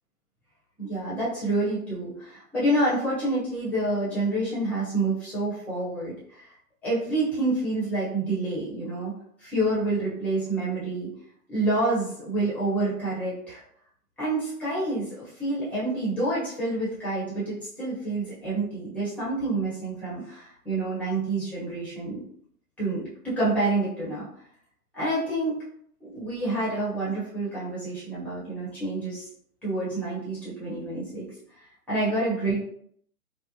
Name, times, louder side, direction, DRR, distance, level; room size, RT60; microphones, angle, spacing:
voice 1, 0.8-6.5 6.8-9.1 9.4-11.1 11.5-13.6 14.2-22.2 22.8-24.3 24.9-25.6 26.0-29.3 29.6-31.3 31.9-32.6, right 2 dB, 5° left, -9 dB, 1.0 m, -28 dB
3.3 x 2.1 x 2.8 m, 0.66 s
figure-of-eight pair, 125°, 48 cm